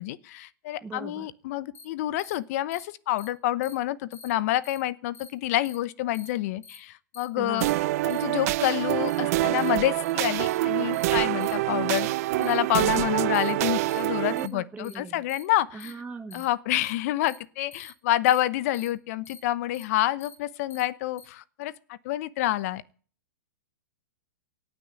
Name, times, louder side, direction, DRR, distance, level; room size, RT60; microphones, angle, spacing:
voice 1, 0.0-7.7 8.0-12.1 12.4-15.9 16.3-22.8, left 14 dB, 50° left, 0.9 m, -28 dB
voice 2, 0.8-1.3 7.4-7.8 14.3-15.2 15.7-16.4, right 4 dB, 10° right, 0.9 m, -39 dB
sound 1, 1.7-1.8 2.2-2.3 2.7-2.8 3.2-3.3 3.6-3.7 4.1-4.3 4.6-4.8 5.1-5.3 5.6-5.7 6.1-6.3 6.6-6.8 7.1-7.2 7.6-7.7 8.1-8.2 8.6-8.7 9.1-9.2 9.6-9.7 10.0-10.1 10.5-10.6 10.9-11.0 11.4-11.5 11.9-12.0 12.4-12.5 12.9-13.0 13.3-13.5 13.9-14.0 14.4-14.5 14.8-14.9 15.3-15.4 15.8-15.9 16.3-16.4 16.8-16.9 17.3-17.4 17.7-17.9 18.3-18.4 18.7-18.9 19.2-19.4 19.7-19.8 20.2-20.3 20.7-20.8 21.2-21.3, left 5 dB, 20° left, 3.3 m, -47 dB
sound 2, 7.6-14.5, right 17 dB, 50° right, 0.6 m, -26 dB
17.5 x 6.1 x 8.9 m
hypercardioid pair, 135°, 10 cm